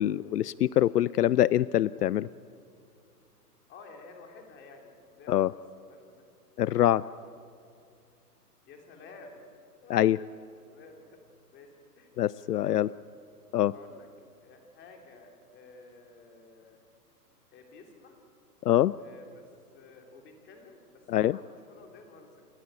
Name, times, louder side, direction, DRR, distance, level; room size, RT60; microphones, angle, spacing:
voice 1, 0.0-2.3 5.3-5.5 6.6-7.0 9.9-10.2 12.2-12.9 13.5-13.7 18.7-18.9 21.1-21.4, left 12 dB, 80° left, 20 dB, 0.5 m, -24 dB
voice 2, 3.7-6.2 7.0-7.3 8.7-9.4 9.8-10.0 10.6-11.2 11.5-11.7 12.0-12.1 12.5-13.0 13.7-14.1 14.4-16.8 17.5-18.2 19.0-19.5 19.7-22.5, left 3 dB, 20° left, 3 dB, 3.2 m, -52 dB
29.0 x 13.0 x 8.9 m, 2.5 s
hypercardioid pair, 130°, 47 cm